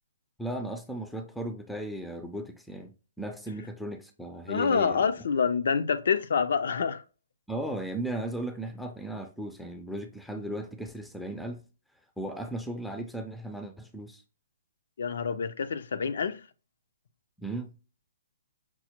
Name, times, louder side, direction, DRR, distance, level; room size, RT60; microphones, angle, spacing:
voice 1, 0.4-5.0 7.5-11.6 12.2-14.2 17.4-17.7, right 1 dB, ahead, 0.4 m, -36 dB
voice 2, 4.5-7.0 15.0-16.4, left 6 dB, 65° left, 0.4 m, -27 dB
5.9 x 2.0 x 2.9 m
hypercardioid pair, 140°, 0 cm